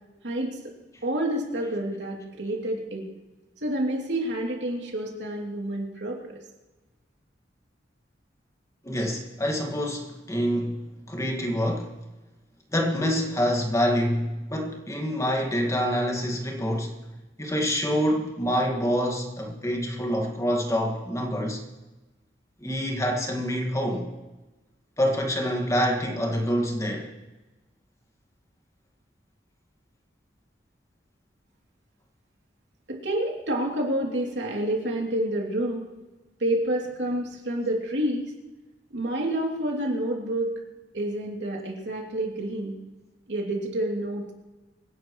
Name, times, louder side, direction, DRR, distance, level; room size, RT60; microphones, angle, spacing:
voice 1, 0.2-0.6 1.0-3.1 3.6-6.4 32.9-35.8 36.4-38.3 38.9-40.5 40.9-42.8 43.3-44.3, right 1 dB, 80° right, -1 dB, 3.0 m, -28 dB
voice 2, 8.8-10.8 11.1-11.9 12.7-17.0 17.4-21.6 22.6-24.1 25.0-27.1, equal, 20° left, 2 dB, 1.9 m, -26 dB
25.5 x 10.5 x 3.2 m, 1.1 s
head